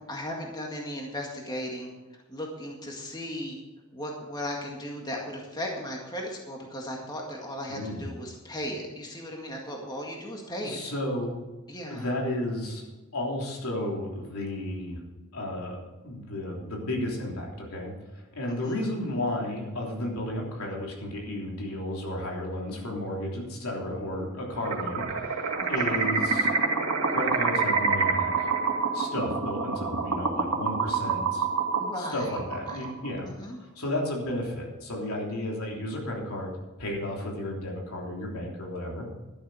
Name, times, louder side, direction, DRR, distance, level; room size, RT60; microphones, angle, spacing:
voice 1, 0.0-1.9 2.3-3.6 3.9-10.8 11.7-12.0 18.6-18.8 25.6-26.1 31.8-32.4 32.7-32.8 33.2-33.6, left 1 dB, 20° left, 0 dB, 1.9 m, -36 dB
voice 2, 7.7-8.1 10.6-11.4 11.9-12.8 13.1-15.0 15.3-15.8 16.0-26.5 27.1-28.5 28.9-31.4 32.0-33.3 33.7-36.5 36.8-39.1, left 1 dB, 75° left, -1 dB, 3.3 m, -33 dB
sound 1, 24.6-33.1, right 4 dB, 85° right, 2.2 m, -27 dB
12.0 x 11.5 x 4.9 m, 1.1 s
head